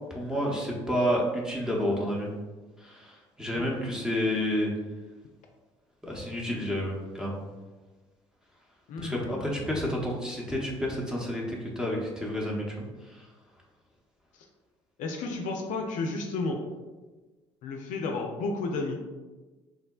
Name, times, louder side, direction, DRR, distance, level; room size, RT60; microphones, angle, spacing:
voice 1, 0.1-2.3 2.8-4.7 6.0-7.4 9.0-13.3, equal, 5° right, -3 dB, 0.8 m, -30 dB
voice 2, 8.9-9.4 14.3-14.5 15.0-16.6 17.6-19.0, left 3 dB, 65° left, 2 dB, 0.4 m, -32 dB
3.6 x 2.1 x 2.3 m, 1.3 s
hypercardioid pair, 60°, 14 cm